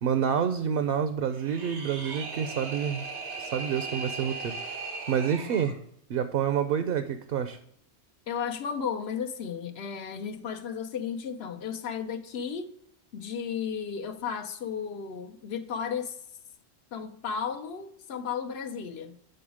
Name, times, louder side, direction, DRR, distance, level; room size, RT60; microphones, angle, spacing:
voice 1, 0.0-3.1 3.4-4.8 5.1-5.8 6.1-7.6, right 8 dB, 65° right, 9 dB, 0.7 m, -28 dB
sound 1, 1.3-5.8, right 4 dB, 90° right, 1.3 m, -38 dB
voice 2, 8.3-12.7 13.1-16.2 16.9-19.1, left 7 dB, 70° left, 7 dB, 0.9 m, -34 dB
7.7 x 3.9 x 4.9 m, 0.70 s
omnidirectional pair, 1.1 m